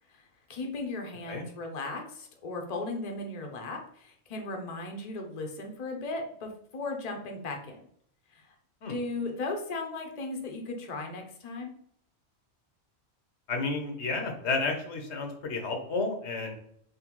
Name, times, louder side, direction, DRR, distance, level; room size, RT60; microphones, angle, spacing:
voice 1, 0.5-7.8 8.3-8.5 8.9-11.7, left 2 dB, 40° left, 3 dB, 0.7 m, -36 dB
voice 2, 13.5-16.6, left 3 dB, 80° left, 3 dB, 1.1 m, -31 dB
3.8 x 3.1 x 3.0 m, 0.66 s
omnidirectional pair, 1.1 m